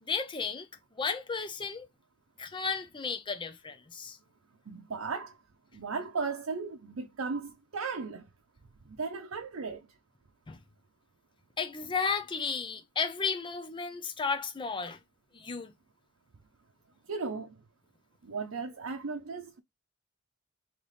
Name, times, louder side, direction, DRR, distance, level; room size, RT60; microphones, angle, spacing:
voice 1, 0.0-0.7 1.0-1.9 2.4-4.2 10.5-10.6 11.6-15.0 15.3-15.7, left 5 dB, 25° left, 0.5 m, -33 dB
voice 2, 4.7-5.4 5.7-8.3 8.9-9.9 17.1-17.6 18.2-19.6, right 4 dB, 80° right, 0.6 m, -36 dB
3.3 x 3.0 x 3.9 m
head